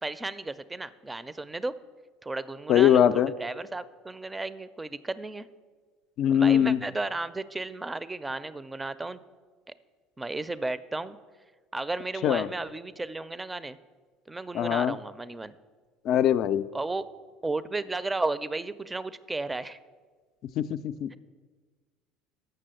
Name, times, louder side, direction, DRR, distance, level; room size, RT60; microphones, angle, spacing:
voice 1, 0.0-1.8 2.2-5.5 6.3-9.2 10.2-11.2 11.7-13.8 14.3-15.5 16.7-17.1 17.4-19.8, right 2 dB, 15° right, 15 dB, 0.4 m, -34 dB
voice 2, 2.7-3.3 6.2-6.8 12.2-12.5 14.5-15.0 16.0-16.6 20.6-21.1, left 10 dB, 55° left, 13 dB, 0.4 m, -22 dB
6.8 x 6.3 x 7.6 m, 1.5 s
hypercardioid pair, 80°, 0 cm